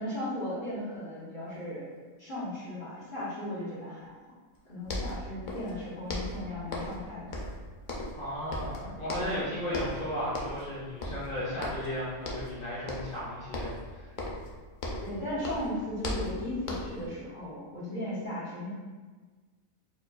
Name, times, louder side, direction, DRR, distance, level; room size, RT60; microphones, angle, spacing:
voice 1, 0.0-1.8 2.2-4.1 4.6-7.2 9.2-9.4 15.0-18.7, left 1 dB, 40° left, -12 dB, 1.3 m, -36 dB
sound 1, 4.6-4.7 4.8-5.8 6.1-7.0 7.3-8.3 8.5-9.4 9.7-10.0 10.3-10.7 11.0-11.9 12.2-12.6 12.9-13.2 13.5-15.2 15.4-17.1, left 1 dB, 60° left, 0.5 m, -36 dB
voice 2, 8.1-14.1, equal, 5° left, -11 dB, 1.0 m, -35 dB
4.4 x 2.5 x 2.3 m, 1.4 s
omnidirectional pair, 1.4 m